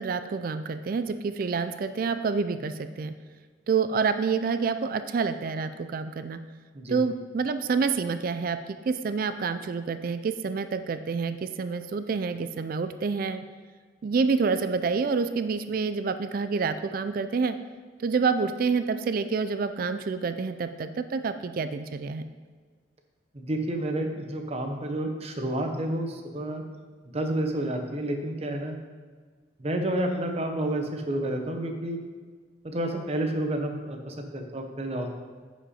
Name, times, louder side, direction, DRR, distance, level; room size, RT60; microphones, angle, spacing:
voice 1, 0.0-3.1 3.7-6.4 6.9-8.6 8.9-13.4 14.0-17.5 18.0-22.2, right 5 dB, 50° right, 10 dB, 0.3 m, -28 dB
voice 2, 23.3-26.6 27.1-28.8 29.6-32.0 32.6-35.2, right 1 dB, 35° right, 4 dB, 0.8 m, -30 dB
10.0 x 5.1 x 4.3 m, 1.5 s
head